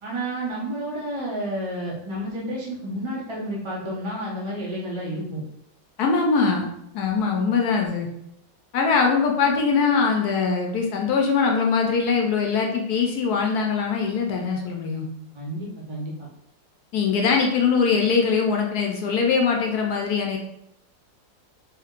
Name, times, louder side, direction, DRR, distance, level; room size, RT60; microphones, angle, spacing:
voice 1, 0.0-5.4 15.3-16.3, right 1 dB, 45° right, -5 dB, 0.3 m, -30 dB
voice 2, 6.0-6.7 6.9-8.1 8.7-15.1 16.9-20.4, left 5 dB, 70° left, 1 dB, 1.0 m, -22 dB
4.4 x 3.5 x 2.4 m, 0.78 s
omnidirectional pair, 2.0 m